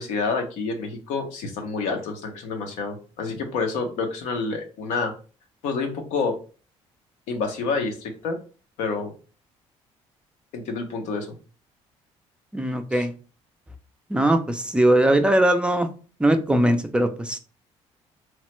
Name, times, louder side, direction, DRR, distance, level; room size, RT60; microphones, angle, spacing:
voice 1, 0.0-5.1 5.6-6.4 7.3-8.4 8.8-9.1 10.5-11.3 12.9-13.0, left 4 dB, 90° left, 4 dB, 0.7 m, -28 dB
voice 2, 12.5-13.1 14.1-15.9 16.2-17.4, right 1 dB, 10° right, 6 dB, 0.3 m, -20 dB
3.0 x 2.1 x 3.0 m, 0.36 s
cardioid pair, 115°, 12 cm